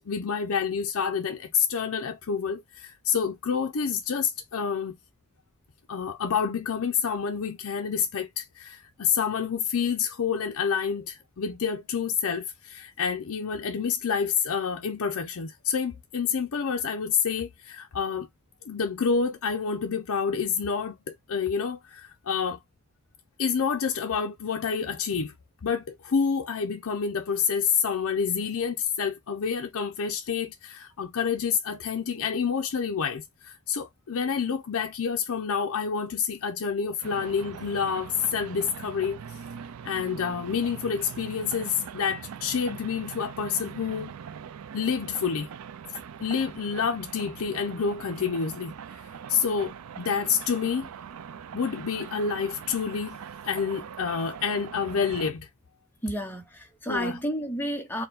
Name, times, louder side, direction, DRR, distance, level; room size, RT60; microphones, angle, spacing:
voice 1, 0.0-5.0 5.9-18.3 18.7-22.6 23.4-25.3 25.6-39.2 39.8-44.1 44.7-45.5 45.9-50.9 51.5-53.2 53.4-55.5 56.9-57.1, left 6 dB, 65° left, 0.5 m, -28 dB
sound 1, 37.0-55.3, right 7 dB, 80° right, 0.4 m, -42 dB
voice 2, 56.0-58.1, equal, 10° left, 0.8 m, -31 dB
4.4 x 2.2 x 3.8 m
head